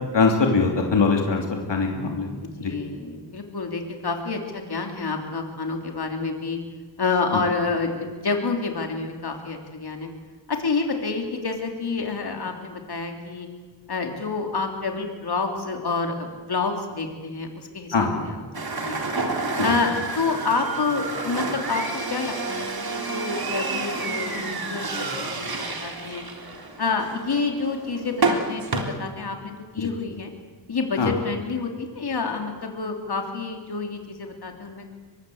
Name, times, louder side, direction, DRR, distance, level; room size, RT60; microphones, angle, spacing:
voice 1, 0.1-2.7 17.9-18.2 19.6-19.7 29.8-29.9 31.0-31.1, left 4 dB, 80° left, 2 dB, 3.1 m, -22 dB
voice 2, 2.4-6.6 7.0-10.1 10.5-13.5 13.9-19.0 19.6-21.8 22.1-26.2 26.8-30.3 30.7-34.9, left 4 dB, 60° left, 3 dB, 3.3 m, -28 dB
sound 1, 18.5-28.8, right 3 dB, 55° right, 3.4 m, -29 dB
23.5 x 21.5 x 8.0 m, 1.4 s
wide cardioid pair, 75°, 43 cm